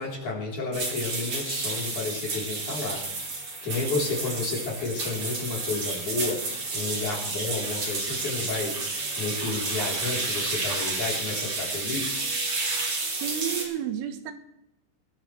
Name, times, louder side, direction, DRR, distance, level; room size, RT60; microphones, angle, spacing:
voice 1, 0.0-3.0 3.6-12.3, left 3 dB, 40° left, -4 dB, 4.6 m, -31 dB
sound 1, 0.7-13.6, right 3 dB, 35° right, 3.9 m, -31 dB
voice 2, 13.1-14.3, right 10 dB, 85° right, 7 dB, 3.5 m, -31 dB
21.5 x 15.0 x 3.2 m, 0.83 s
omnidirectional pair, 5.7 m